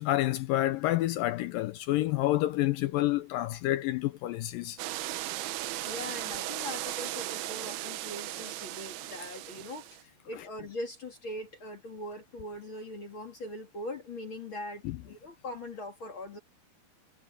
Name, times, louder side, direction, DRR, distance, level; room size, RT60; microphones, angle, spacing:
voice 1, 0.0-4.8 14.8-15.0, left 15 dB, 80° left, 2.1 m, -28 dB
sound 1, 4.8-10.0, right 15 dB, 85° right, 2.9 m, -37 dB
voice 2, 5.9-16.4, left 1 dB, 40° left, 2.4 m, -41 dB
omnidirectional pair, 4.4 m